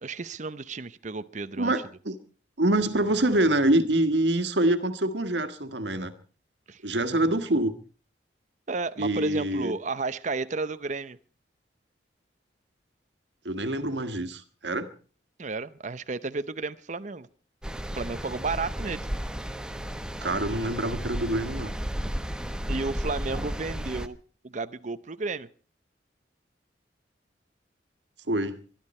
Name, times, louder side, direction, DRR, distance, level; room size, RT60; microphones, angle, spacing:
voice 1, 0.0-1.7 6.7-6.8 8.7-11.2 15.4-17.3 17.9-19.0 22.7-24.2 24.4-25.5, right 3 dB, 40° right, 0.7 m, -32 dB
voice 2, 1.6-2.2 2.6-6.1 6.8-7.7 9.0-9.7 13.4-14.9 20.2-21.7 28.3-28.6, right 1 dB, 75° right, 1.7 m, -25 dB
sound 1, 17.6-24.1, equal, 5° right, 0.9 m, -33 dB
23.5 x 12.0 x 4.3 m
head